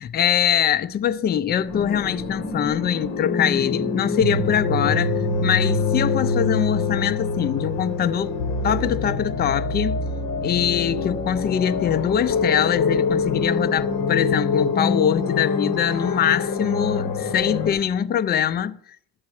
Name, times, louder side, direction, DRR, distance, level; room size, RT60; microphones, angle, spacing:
voice 1, 0.0-5.1 5.4-8.3 8.6-10.0 10.4-18.8, left 9 dB, 30° left, 0.4 m, -23 dB
sound 1, 1.7-17.7, left 4 dB, 60° left, 1.7 m, -25 dB
11.5 x 7.3 x 4.7 m
cardioid pair, 130°, 36 cm